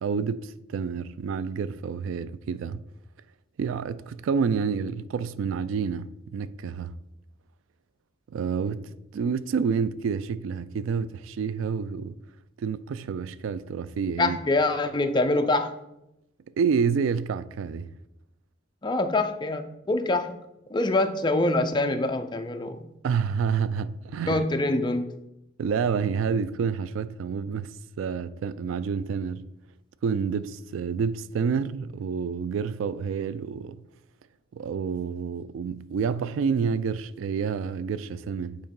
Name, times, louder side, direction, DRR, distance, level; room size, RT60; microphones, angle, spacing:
voice 1, 0.0-2.8 3.6-7.0 8.3-12.2 12.6-14.4 16.6-17.9 23.0-24.5 25.6-29.5 30.0-33.8 34.5-38.6, right 6 dB, 85° right, 0.3 m, -28 dB
voice 2, 14.2-15.8 18.8-20.4 20.7-22.9 24.3-25.2, left 2 dB, 25° left, 0.4 m, -25 dB
8.8 x 3.0 x 5.2 m
head